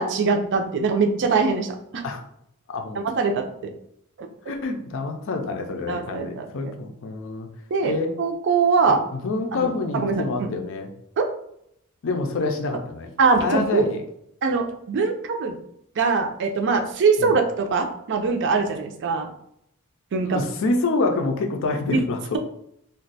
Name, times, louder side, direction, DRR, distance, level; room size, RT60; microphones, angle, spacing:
voice 1, 0.0-2.0 3.2-3.4 4.2-4.3 5.9-6.5 7.7-7.9 8.2-9.0 9.5-10.5 11.2-11.3 13.2-13.9 14.4-15.6 16.0-19.3 20.1-20.4 21.9-22.0, right 4 dB, 55° right, 5 dB, 0.4 m, -22 dB
voice 2, 2.7-3.0 4.5-7.5 7.8-8.1 8.9-10.9 12.0-13.1 13.4-14.0 17.2-17.4 20.2-22.4, left 3 dB, 60° left, 5 dB, 0.5 m, -27 dB
2.5 x 2.2 x 4.0 m, 0.74 s
head